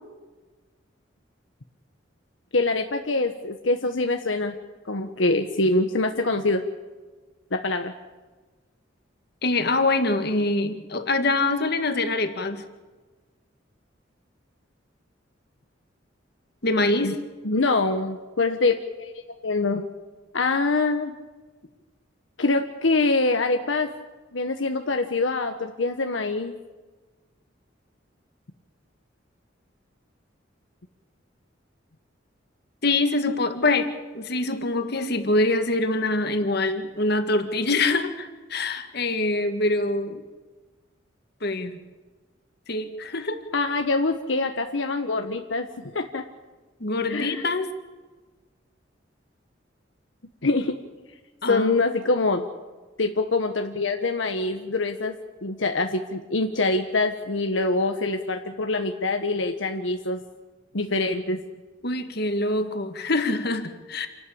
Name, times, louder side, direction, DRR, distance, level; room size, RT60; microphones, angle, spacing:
voice 1, 2.5-4.5 4.8-6.6 7.5-7.9 17.0-17.1 17.4-19.1 19.4-19.8 20.3-21.1 22.4-23.9 24.3-26.5 43.5-45.7 45.9-46.2 47.1-47.4 50.4-50.8 51.5-52.4 53.0-55.1 55.4-60.2 60.7-61.4, left 3 dB, 80° left, 5 dB, 1.2 m, -24 dB
voice 2, 9.4-12.6 16.6-17.2 32.8-40.2 41.4-41.8 42.7-43.4 46.8-47.7 51.4-51.7 61.8-64.1, left 2 dB, 55° left, 8 dB, 1.8 m, -24 dB
28.0 x 12.0 x 8.5 m, 1.3 s
head